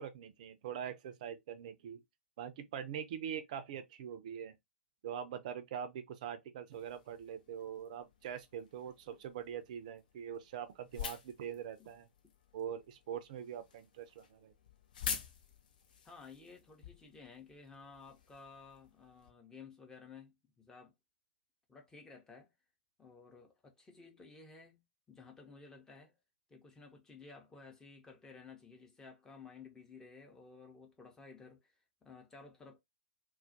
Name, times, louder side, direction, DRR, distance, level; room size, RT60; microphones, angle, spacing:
voice 1, 0.0-2.0 2.4-4.5 5.0-12.1 12.5-14.5, right 8 dB, 45° right, 0.4 m, -43 dB
sound 1, 6.7-19.3, left 7 dB, 55° left, 0.4 m, -48 dB
voice 2, 16.0-20.9 21.7-22.5 23.0-24.8 25.1-26.2 26.5-32.8, left 4 dB, 10° left, 0.6 m, -55 dB
2.3 x 2.1 x 2.6 m
figure-of-eight pair, 110°, 6 cm